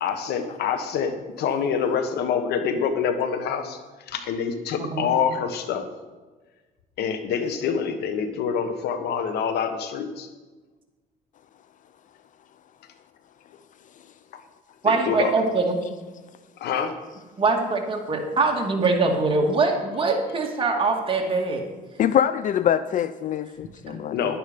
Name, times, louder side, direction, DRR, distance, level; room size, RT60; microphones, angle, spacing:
voice 1, 0.0-3.8 4.1-5.9 7.0-10.3 14.8-15.3 16.6-17.0 24.1-24.4, left 7 dB, 75° left, 9 dB, 1.4 m, -26 dB
voice 2, 14.8-15.8 17.4-21.6 23.9-24.0, right 3 dB, 30° right, 1 dB, 2.3 m, -23 dB
voice 3, 22.0-24.4, left 9 dB, 50° left, 14 dB, 0.5 m, -24 dB
11.0 x 10.0 x 5.4 m, 1.3 s
cardioid pair, 110°, 17 cm